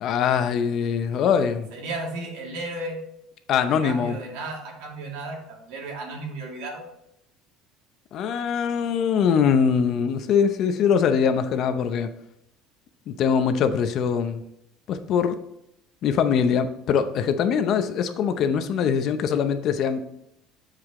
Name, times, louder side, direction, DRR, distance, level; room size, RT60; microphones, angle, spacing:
voice 1, 0.0-1.7 3.5-4.2 8.1-12.1 13.1-14.4 14.9-15.4 16.0-20.0, left 7 dB, 45° left, 9 dB, 0.7 m, -22 dB
voice 2, 1.7-3.0 3.8-6.9, right 2 dB, 85° right, 0 dB, 2.4 m, -34 dB
7.7 x 4.9 x 3.7 m, 0.80 s
cardioid pair, 150°, 0 cm